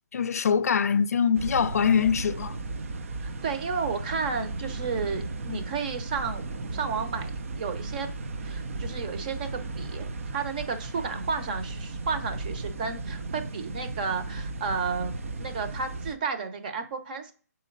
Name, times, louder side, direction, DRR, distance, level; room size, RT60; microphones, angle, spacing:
voice 1, 0.1-2.6, left 7 dB, 60° left, 0.4 m, -23 dB
sound 1, 1.3-16.1, right 3 dB, 50° right, 0.6 m, -35 dB
voice 2, 3.2-6.4 6.7-8.1 8.4-15.1 15.4-17.3, right 5 dB, 30° right, 0.9 m, -32 dB
7.3 x 4.3 x 3.9 m
hypercardioid pair, 165°, 9 cm